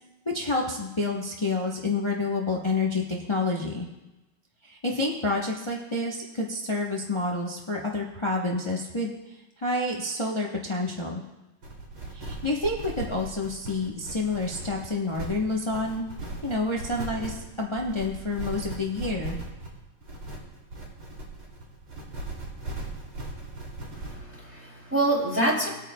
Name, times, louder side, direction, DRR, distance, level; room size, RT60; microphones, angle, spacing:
voice 1, 0.3-3.9 4.6-9.1 9.6-11.2 12.1-16.1 16.4-19.4, left 2 dB, 45° left, -2 dB, 0.3 m, -28 dB
sound 1, 11.6-24.2, right 2 dB, 75° right, 3.5 m, -38 dB
voice 2, 23.9-25.7, right 1 dB, 5° right, -4 dB, 2.8 m, -26 dB
20.0 x 9.0 x 2.2 m, 1.0 s
omnidirectional pair, 2.4 m